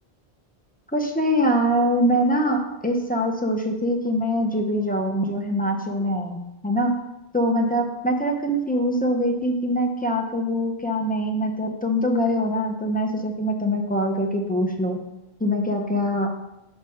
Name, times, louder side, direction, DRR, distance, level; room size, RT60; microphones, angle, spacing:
voice 1, 0.9-6.4 6.6-6.9 7.3-15.0 15.4-16.3, equal, 10° left, 1 dB, 0.4 m, -23 dB
5.2 x 3.3 x 5.6 m, 0.94 s
omnidirectional pair, 1.1 m